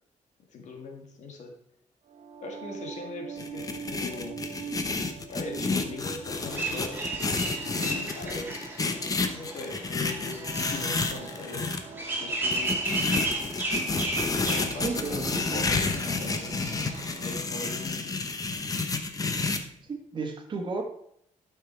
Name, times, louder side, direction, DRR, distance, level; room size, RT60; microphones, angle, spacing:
voice 1, 0.5-1.5 2.4-4.5 5.3-7.3 7.6-12.9 14.4-16.6 17.2-18.3, left 3 dB, 65° left, 3 dB, 1.9 m, -41 dB
sound 1, 2.1-18.0, right 6 dB, 65° right, 1.1 m, -45 dB
sound 2, 3.4-11.8 12.5-19.6, left 3 dB, 25° left, 0.9 m, -30 dB
sound 3, 6.5-17.1, right 2 dB, 15° right, 2.4 m, -34 dB
voice 2, 14.8-15.8 19.8-20.8, right 4 dB, 40° right, 3 dB, 1.6 m, -34 dB
12.0 x 5.9 x 4.5 m, 0.72 s
wide cardioid pair, 160°, 13 cm